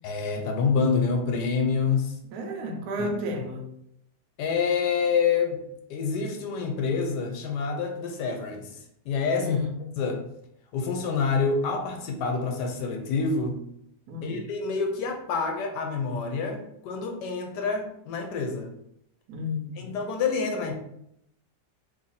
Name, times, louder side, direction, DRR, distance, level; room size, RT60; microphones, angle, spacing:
voice 1, 0.0-2.2 3.0-3.1 4.4-5.6 5.9-8.8 9.1-9.6 10.0-10.2 10.7-13.6 14.2-18.7 19.8-20.7, left 5 dB, 85° left, 1.2 m, -27 dB
voice 2, 2.3-3.7 9.4-9.8 14.1-14.4 19.3-19.9, left 2 dB, 70° right, 1.1 m, -32 dB
3.0 x 2.6 x 3.9 m
omnidirectional pair, 1.8 m